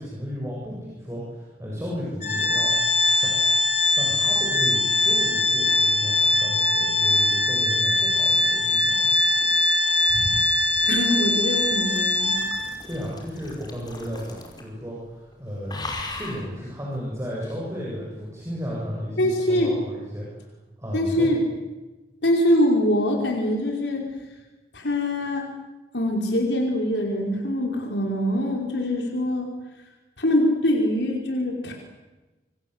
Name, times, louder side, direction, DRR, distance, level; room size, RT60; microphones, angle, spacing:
voice 1, 0.0-3.6 4.0-9.1 12.9-15.8 16.1-20.4 20.8-21.3, equal, 15° right, -5 dB, 7.7 m, -34 dB
Organ, 2.2-12.9, left 2 dB, 40° left, 3.9 m, -22 dB
sound 1, 9.1-14.8 15.1-15.3 15.7-16.5 17.4-17.6, left 2 dB, 25° left, 5.2 m, -40 dB
voice 2, 10.9-12.4 19.2-19.7 20.9-21.4 22.2-24.0 24.7-25.5 25.9-29.5 30.2-31.7, left 1 dB, 85° left, 0 dB, 5.3 m, -23 dB
28.0 x 25.0 x 8.3 m, 1.2 s
head